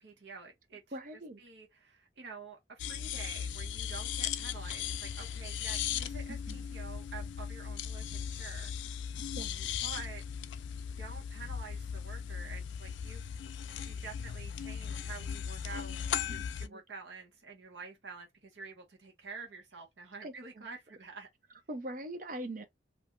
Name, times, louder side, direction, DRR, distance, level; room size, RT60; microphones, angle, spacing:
voice 1, 0.0-0.8 1.4-8.7 9.8-10.2 11.0-13.3 13.8-21.3, right 4 dB, 80° right, 1.0 m, -48 dB
voice 2, 0.9-1.4 6.3-6.6 9.3-9.7 16.3-16.8 20.2-20.7 21.7-22.6, right 1 dB, 50° right, 0.7 m, -42 dB
sound 1, 2.8-16.7, left 8 dB, 85° left, 0.3 m, -38 dB
2.6 x 2.2 x 3.6 m
head